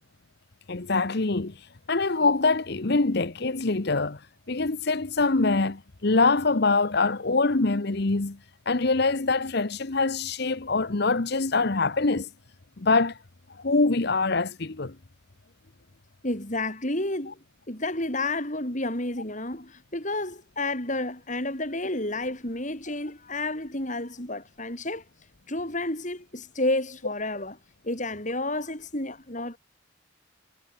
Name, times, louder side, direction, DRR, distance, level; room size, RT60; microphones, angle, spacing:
voice 1, 0.7-1.6 1.9-4.2 4.5-8.4 8.7-12.3 12.8-13.2 13.6-15.0, left 3 dB, 50° left, 1.0 m, -24 dB
voice 2, 16.2-17.4 17.7-25.0 25.5-27.6 27.8-29.6, left 2 dB, 35° left, 4.8 m, -30 dB
head